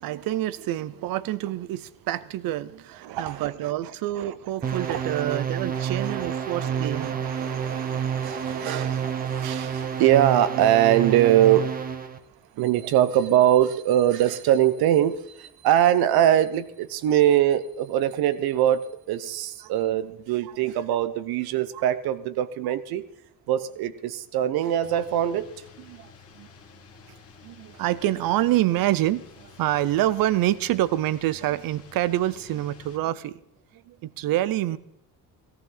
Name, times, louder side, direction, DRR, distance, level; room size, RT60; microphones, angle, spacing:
voice 1, 0.0-7.2 7.7-7.8 8.5-9.0 12.5-12.7 17.1-17.2 19.6-20.0 20.4-20.5 21.7-21.8 22.6-22.7 25.9-26.5 27.1-27.2 27.4-33.4 33.7-34.8, right 14 dB, 70° right, 0.8 m, -27 dB
voice 2, 3.0-3.5 4.2-4.3 4.6-5.4 5.7-11.9 12.6-23.1 23.5-25.5, right 11 dB, 85° right, 1.1 m, -23 dB
sound 1, 4.6-12.2, right 7 dB, 25° right, 0.9 m, -29 dB
sound 2, 24.8-33.0, left 5 dB, 40° left, 1.7 m, -50 dB
17.5 x 14.5 x 4.0 m
cardioid pair, 180°, 36 cm